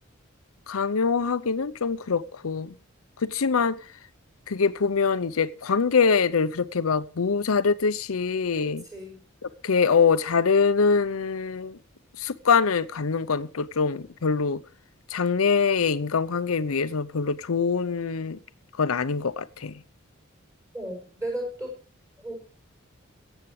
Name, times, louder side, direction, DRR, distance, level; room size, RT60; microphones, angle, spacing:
voice 1, 0.7-2.7 3.2-3.8 4.5-8.8 9.6-11.8 12.2-14.6 15.1-18.4 18.8-19.8, left 5 dB, 90° left, 0.7 m, -24 dB
voice 2, 8.6-9.2 20.7-21.7 22.2-22.3, right 1 dB, 15° right, 5.8 m, -35 dB
24.0 x 8.1 x 3.2 m
head